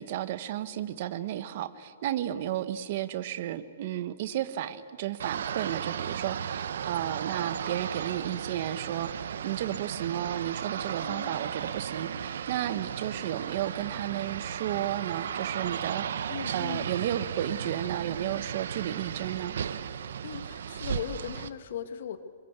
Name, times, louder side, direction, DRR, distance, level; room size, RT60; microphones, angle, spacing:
voice 1, 0.0-19.5, right 12 dB, 45° right, 13 dB, 1.3 m, -33 dB
sound 1, 5.2-21.5, right 8 dB, 70° right, 1.0 m, -35 dB
voice 2, 11.0-11.4 16.3-16.9 20.2-22.2, left 9 dB, 60° left, 9 dB, 1.9 m, -38 dB
27.0 x 22.5 x 8.2 m, 2.2 s
hypercardioid pair, 160°, 0 cm